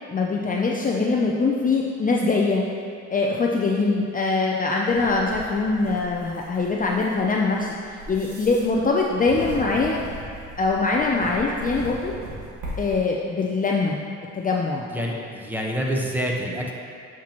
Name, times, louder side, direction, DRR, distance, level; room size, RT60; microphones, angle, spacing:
voice 1, 0.1-2.6 3.1-7.7 8.1-10.0 10.6-12.1 12.8-14.0 14.4-14.9, left 3 dB, 30° left, -1 dB, 0.5 m, -23 dB
sound 1, 4.9-12.9, right 1 dB, 85° right, 1.7 m, -38 dB
voice 2, 14.9-16.7, equal, 5° right, -2 dB, 1.1 m, -27 dB
8.5 x 5.9 x 3.0 m, 2.3 s
cardioid pair, 90°, 30 cm